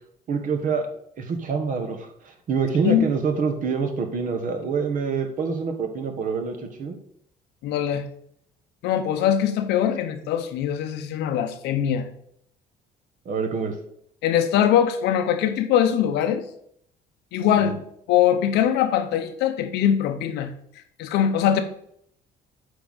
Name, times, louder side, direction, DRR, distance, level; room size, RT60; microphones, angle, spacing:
voice 1, 0.3-0.9 1.2-7.0 13.2-13.8 17.5-17.7, right 5 dB, 50° right, 1.3 m, -26 dB
voice 2, 7.6-8.1 8.8-12.1 14.2-16.4 17.3-17.8 18.1-20.5 21.0-21.6, left 9 dB, 85° left, 0.8 m, -22 dB
8.0 x 4.9 x 4.1 m
cardioid pair, 110°, 17 cm